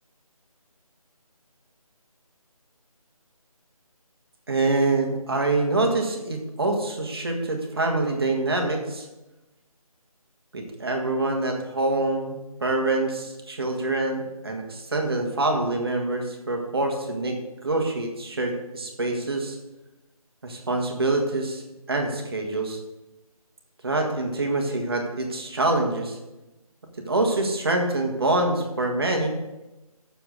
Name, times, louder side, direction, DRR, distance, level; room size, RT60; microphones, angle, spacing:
voice 1, 4.5-9.1 10.5-19.6 20.4-21.6 21.9-22.8 23.8-26.2 27.1-29.4, right 2 dB, 40° right, 2 dB, 1.5 m, -25 dB
7.2 x 6.9 x 6.3 m, 1.0 s
figure-of-eight pair, 165°, 19 cm